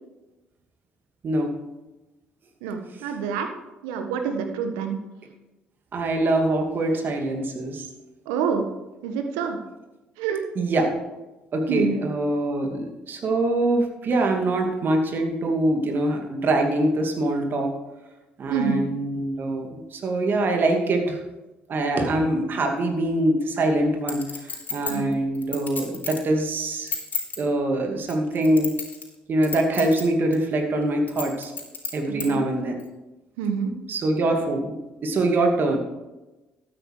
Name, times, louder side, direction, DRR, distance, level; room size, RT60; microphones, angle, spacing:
voice 1, 2.6-3.5 3.8-5.0 8.2-8.6 9.0-9.6 10.2-10.4 11.7-12.0 18.5-18.8 24.9-25.1 32.0-32.4 33.4-33.7, right 6 dB, 80° right, 6 dB, 1.4 m, -27 dB
voice 2, 5.9-7.9 10.6-10.9 11.5-17.7 18.4-21.2 21.7-26.9 27.4-28.7 29.3-31.5 31.9-32.8 33.9-34.7 35.0-35.8, right 2 dB, 50° right, 3 dB, 2.5 m, -24 dB
Chink clink, 24.1-26.3 26.7-27.4 28.0-29.1 29.4-30.0 30.3-30.4 31.1-32.3 32.8-32.9, left 5 dB, 40° left, 4.1 m, -31 dB
12.5 x 9.3 x 4.9 m, 1.1 s
hypercardioid pair, 55°, 4 cm